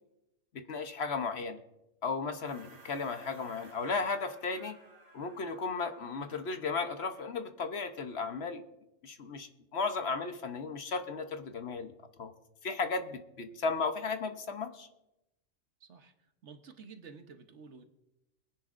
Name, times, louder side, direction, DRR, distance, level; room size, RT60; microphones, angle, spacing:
voice 1, 0.7-1.6 2.0-4.8 5.1-8.6 9.0-11.9 12.2-12.3 12.6-14.9, left 4 dB, 60° left, 8 dB, 1.1 m, -35 dB
sound 1, 2.4-7.0, right 2 dB, 30° right, 1.4 m, -57 dB
voice 2, 15.8-16.1 16.4-17.8, right 5 dB, 65° right, 7 dB, 1.3 m, -51 dB
22.5 x 10.0 x 2.5 m, 0.91 s
omnidirectional pair, 1.3 m